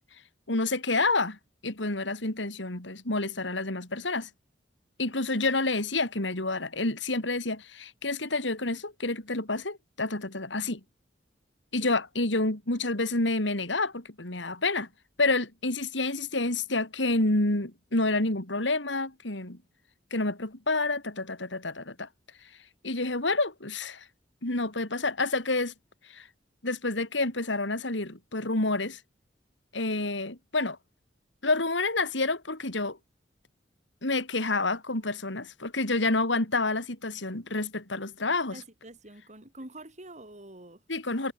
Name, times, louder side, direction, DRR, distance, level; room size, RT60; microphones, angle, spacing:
voice 1, 0.5-1.4 1.6-4.3 5.0-10.8 11.7-14.9 15.2-19.6 20.1-22.1 22.8-24.1 24.4-25.7 26.0-26.3 26.6-29.0 29.7-30.8 31.4-33.0 34.0-38.6 40.9-41.3, left 2 dB, 85° left, 3.9 m, -28 dB
voice 2, 38.5-40.8, right 1 dB, 40° right, 6.7 m, -46 dB
head